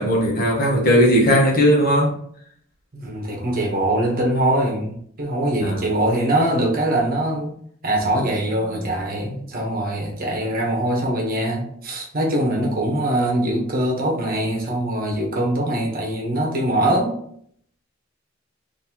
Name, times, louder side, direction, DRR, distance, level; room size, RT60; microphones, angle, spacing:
voice 1, 0.0-2.1 5.6-5.8, equal, 45° left, 1.0 m, -17 dB
voice 2, 2.9-7.6 7.8-17.2, right 1 dB, 45° right, 1.0 m, -22 dB
4.0 x 2.7 x 2.9 m
head